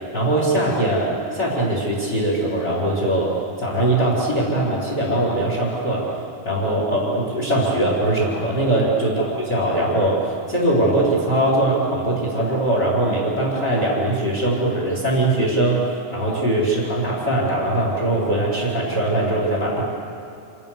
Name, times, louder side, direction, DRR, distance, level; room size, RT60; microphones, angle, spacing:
voice 1, 0.1-6.1 6.4-10.2 10.5-19.8, right 1 dB, 20° left, -4 dB, 4.9 m, -21 dB
27.5 x 27.5 x 7.0 m, 2.7 s
omnidirectional pair, 5.3 m